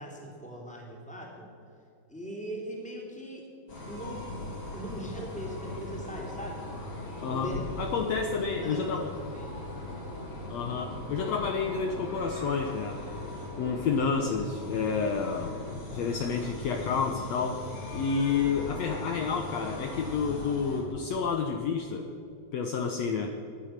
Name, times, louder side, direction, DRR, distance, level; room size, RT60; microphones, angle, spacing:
voice 1, 0.0-1.5 2.1-3.5 3.8-4.3 4.7-6.7 7.2-7.7 8.3-9.5, right 1 dB, ahead, -1 dB, 2.9 m, -40 dB
sound 1, 3.7-20.8, left 2 dB, 50° left, 4.2 m, -39 dB
voice 2, 7.2-9.1 10.5-13.0 13.5-15.6 15.9-17.6 17.9-22.1 22.5-23.4, left 5 dB, 70° left, 4 dB, 1.9 m, -30 dB
18.5 x 11.0 x 6.6 m, 2.6 s
omnidirectional pair, 3.5 m